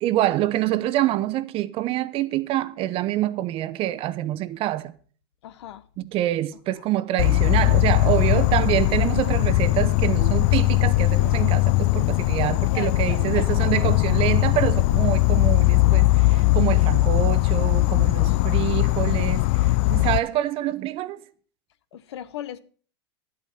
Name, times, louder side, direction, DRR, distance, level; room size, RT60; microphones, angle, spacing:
voice 1, 0.0-4.9 6.0-21.2, right 14 dB, 40° right, 0.8 m, -26 dB
voice 2, 5.4-5.8 8.3-8.6 12.4-13.5 13.8-13.9 18.2-18.6 21.9-22.6, left 11 dB, 75° left, 0.9 m, -38 dB
Insect, 7.2-20.2, left 19 dB, 55° left, 0.4 m, -20 dB
11.5 x 8.5 x 5.8 m
hypercardioid pair, 115°, 14 cm